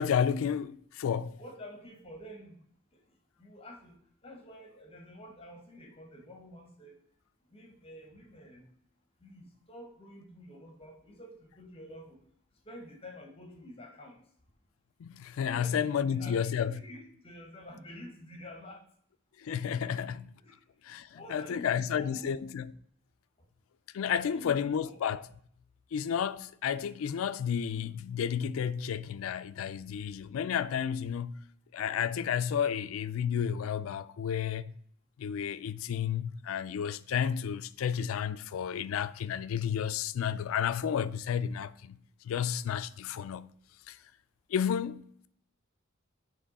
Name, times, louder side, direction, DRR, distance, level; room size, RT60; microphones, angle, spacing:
voice 1, 0.0-1.4 15.0-16.8 19.4-20.3 20.8-22.7 23.9-25.3 25.9-31.3 31.7-34.7 35.2-42.0 42.2-43.5 43.9-44.0 44.5-45.3, left 8 dB, 85° left, 0.3 m, -31 dB
voice 2, 1.4-2.6 2.9-3.0 3.4-3.9 4.2-7.0 7.5-8.6 9.2-12.2 12.6-14.2 15.4-18.8 19.8-20.6 21.1-22.4 24.1-25.0, equal, 30° left, 1.0 m, -49 dB
7.5 x 3.1 x 4.0 m
head